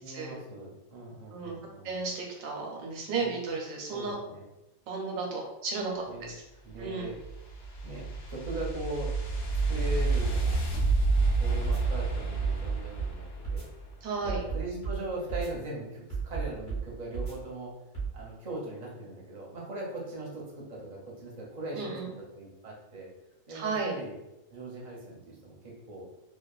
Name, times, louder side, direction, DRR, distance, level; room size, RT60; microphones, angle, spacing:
voice 1, 0.0-1.9 3.2-3.4 3.9-4.4 6.1-6.3 6.6-7.2 7.8-9.2 9.7-10.6 11.4-13.7 14.2-17.7 18.1-22.0 22.3-23.1 23.5-24.1 24.5-26.1, right 2 dB, 45° right, -3 dB, 0.6 m, -40 dB
voice 2, 1.8-4.2 4.9-6.4 6.8-7.1 14.0-14.4 21.8-22.1 23.5-23.9, right 4 dB, 90° right, 0 dB, 1.1 m, -34 dB
sound 1, 6.7-14.0, right 3 dB, 70° left, 0.9 m, -29 dB
sound 2, 10.8-11.3 11.6-11.8 12.4-13.1 13.4-13.7 14.3-15.0 15.3-15.5 16.1-16.8 17.1-17.3 17.9-18.1, right 5 dB, 40° left, 1.1 m, -33 dB
2.8 x 2.1 x 2.3 m, 0.91 s
omnidirectional pair, 1.4 m